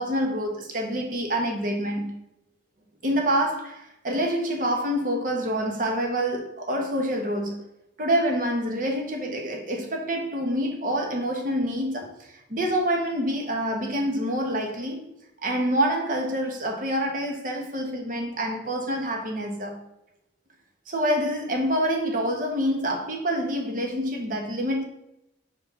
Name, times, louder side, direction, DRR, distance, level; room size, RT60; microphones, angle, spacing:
voice 1, 0.0-2.2 3.0-7.7 8.0-15.0 15.4-19.8 20.9-24.8, equal, 45° right, 1.1 m, -27 dB
5.7 x 4.8 x 3.9 m
head